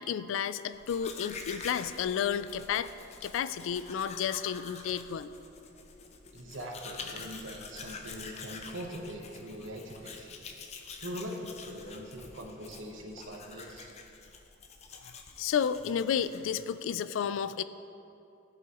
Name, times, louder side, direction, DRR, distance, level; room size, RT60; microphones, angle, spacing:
voice 1, 0.0-2.9 3.2-5.3 14.9-17.6, left 8 dB, 75° left, 14 dB, 0.3 m, -32 dB
Domestic sounds home sounds, 0.7-16.8, left 4 dB, 35° left, 0.6 m, -47 dB
voice 2, 6.3-10.4 10.9-13.9, equal, 70° right, 1 dB, 1.0 m, -42 dB
14.5 x 5.8 x 3.0 m, 2.8 s
head